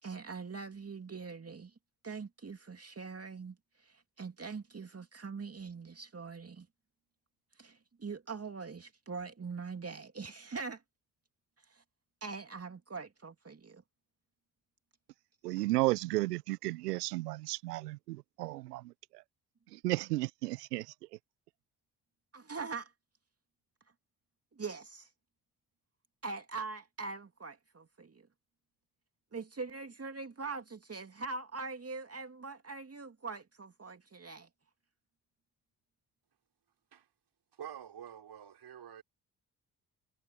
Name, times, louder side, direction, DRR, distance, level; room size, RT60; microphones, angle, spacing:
voice 1, 0.0-1.7 2.0-6.7 7.6-10.8 11.7-11.8 12.2-13.8 22.3-22.9 24.6-25.1 26.2-28.3 29.3-34.5, right 4 dB, 30° right, 2.5 m, -42 dB
voice 2, 15.4-19.2 19.7-20.9, right 19 dB, 85° right, 0.7 m, -33 dB
voice 3, 37.5-39.0, right 9 dB, 55° right, 5.6 m, -47 dB
hypercardioid pair, 40°, 46 cm